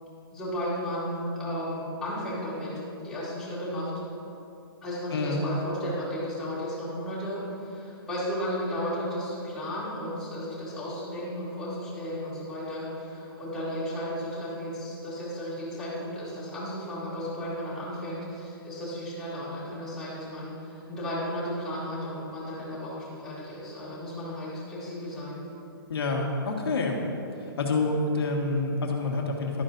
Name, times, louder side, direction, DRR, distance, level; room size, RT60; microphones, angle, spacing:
voice 1, 0.3-2.7 3.0-3.9 4.8-25.4, equal, 5° left, -11 dB, 2.4 m, -34 dB
voice 2, 5.1-5.4 25.9-27.0 27.4-29.6, left 3 dB, 90° left, 0 dB, 1.7 m, -27 dB
12.0 x 11.0 x 2.7 m, 2.7 s
hypercardioid pair, 170°, 12 cm